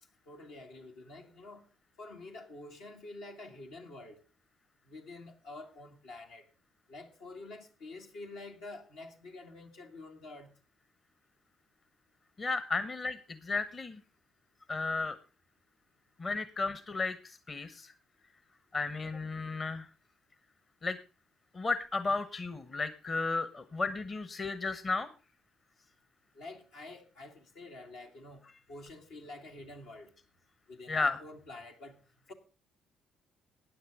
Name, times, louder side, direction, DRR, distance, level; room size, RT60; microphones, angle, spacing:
voice 1, 0.3-1.6 2.0-4.2 4.9-6.5 6.9-10.5 26.3-30.2 30.7-32.0, left 2 dB, 80° left, 2.2 m, -48 dB
voice 2, 12.4-14.0 14.7-15.2 16.2-17.9 18.7-19.9 20.8-21.0 21.5-25.1 30.9-31.2, left 3 dB, 40° left, 1.1 m, -33 dB
16.0 x 9.7 x 3.6 m
hypercardioid pair, 55°, 0 cm